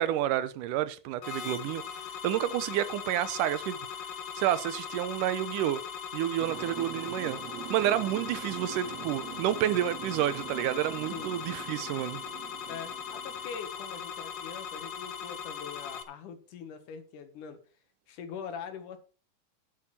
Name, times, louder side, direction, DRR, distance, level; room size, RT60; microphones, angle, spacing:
voice 1, 0.0-1.8 2.2-3.8 4.4-5.8 6.1-7.4 7.7-12.2, right 12 dB, 85° right, 2.4 m, -29 dB
sound 1, 1.2-16.0, left 7 dB, 55° left, 1.3 m, -39 dB
sound 2, 6.4-13.6, right 11 dB, 70° right, 1.9 m, -44 dB
voice 2, 12.7-17.6 18.1-19.0, left 7 dB, 80° left, 3.1 m, -42 dB
10.0 x 7.7 x 5.9 m
omnidirectional pair, 3.6 m